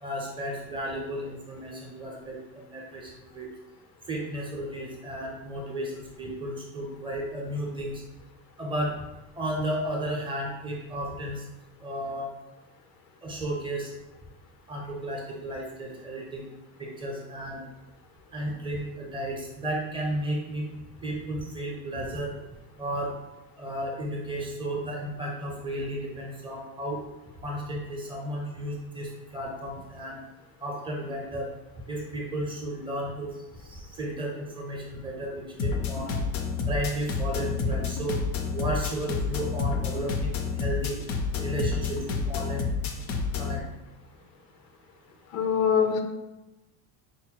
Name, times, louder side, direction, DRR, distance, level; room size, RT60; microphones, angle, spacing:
voice 1, 0.0-3.5 4.1-8.0 8.6-8.9 9.4-11.4 11.8-12.3 13.2-13.9 14.7-16.4 16.8-17.6 18.3-20.6 21.0-22.3 22.8-23.1 23.6-27.0 27.4-30.2 30.6-31.5 31.9-33.3 33.6-36.1 36.7-38.2 38.5-41.0 41.4-42.0 42.3-42.6 43.4-43.6, right 1 dB, 15° right, -2 dB, 0.5 m, -33 dB
sound 1, 35.6-43.6, left 4 dB, 40° left, 0.4 m, -29 dB
voice 2, 45.3-46.0, left 7 dB, 90° left, 6 dB, 0.7 m, -23 dB
4.8 x 2.1 x 4.5 m, 1.0 s
cardioid pair, 165°, 38 cm